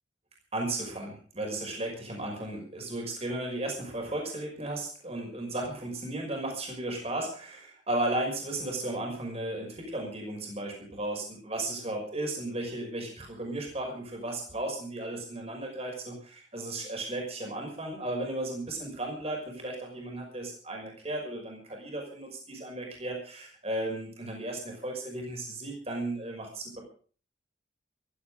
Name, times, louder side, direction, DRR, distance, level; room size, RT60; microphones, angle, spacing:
voice 1, 0.5-26.8, right 1 dB, 35° right, 1 dB, 5.8 m, -35 dB
16.0 x 14.5 x 5.1 m, 0.43 s
head